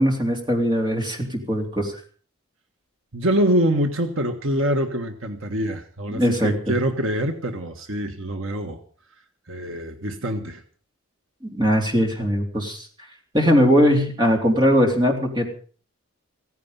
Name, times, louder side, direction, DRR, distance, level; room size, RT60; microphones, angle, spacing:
voice 1, 0.0-1.9 6.1-6.7 11.5-12.9 13.3-15.5, equal, 20° right, 1 dB, 3.6 m, -20 dB
voice 2, 3.1-8.8 9.5-10.6, equal, 65° right, 6 dB, 1.5 m, -25 dB
16.0 x 16.0 x 5.5 m, 0.43 s
head